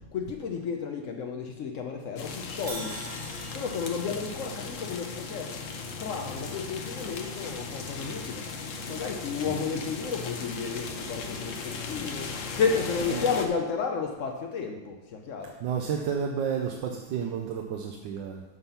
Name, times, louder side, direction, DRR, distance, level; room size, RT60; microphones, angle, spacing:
voice 1, 0.1-2.9 3.5-5.5 6.0-8.4 8.9-12.3 12.6-14.9 15.3-15.5, left 5 dB, 85° left, 2 dB, 0.7 m, -32 dB
sound 1, 2.2-13.5, left 4 dB, 55° left, 0.9 m, -37 dB
Crash cymbal, 2.7-6.7, right 2 dB, 45° right, 0.6 m, -45 dB
voice 2, 15.6-18.4, right 7 dB, 70° right, 2 dB, 1.3 m, -31 dB
8.0 x 5.7 x 5.6 m, 1.1 s
omnidirectional pair, 2.2 m